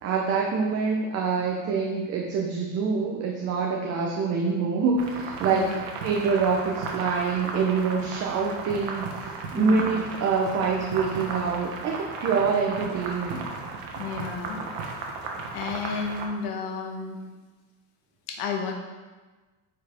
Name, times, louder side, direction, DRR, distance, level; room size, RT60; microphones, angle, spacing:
voice 1, 0.0-13.5, right 5 dB, 40° right, -1 dB, 0.8 m, -26 dB
sound 1, 5.0-16.3, right 4 dB, 85° right, 1.4 m, -35 dB
voice 2, 9.5-9.9 13.9-14.7 15.5-17.2 18.3-18.7, left 5 dB, 70° left, 2 dB, 1.2 m, -32 dB
9.3 x 4.9 x 3.5 m, 1.3 s
cardioid pair, 160°, 40 cm